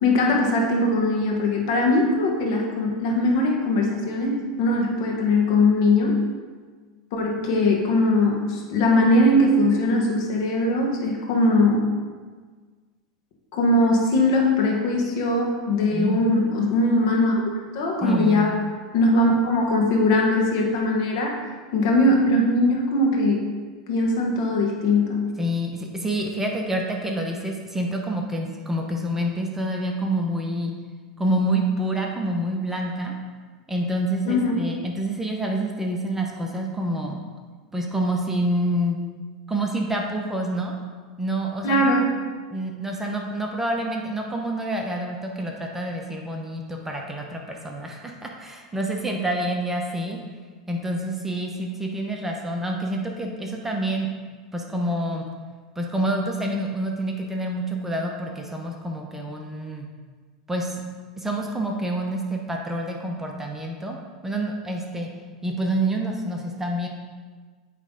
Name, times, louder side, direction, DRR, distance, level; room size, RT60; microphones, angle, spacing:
voice 1, 0.0-6.2 7.1-11.9 13.5-18.5 18.9-21.4 21.7-23.5 23.9-25.2 34.3-34.6 41.6-42.0, left 2 dB, 60° left, -1 dB, 1.4 m, -21 dB
voice 2, 15.9-16.3 18.0-18.5 25.4-30.7 31.2-33.1 33.7-37.2 37.7-39.0 39.5-40.7 41.2-41.9 42.5-50.2 50.7-54.1 54.5-55.3 55.8-59.9 60.5-60.8 61.2-64.0 64.2-65.1 65.4-66.9, right 1 dB, 10° right, 0 dB, 0.9 m, -27 dB
8.6 x 3.3 x 3.9 m, 1.5 s
hypercardioid pair, 95°, 3 cm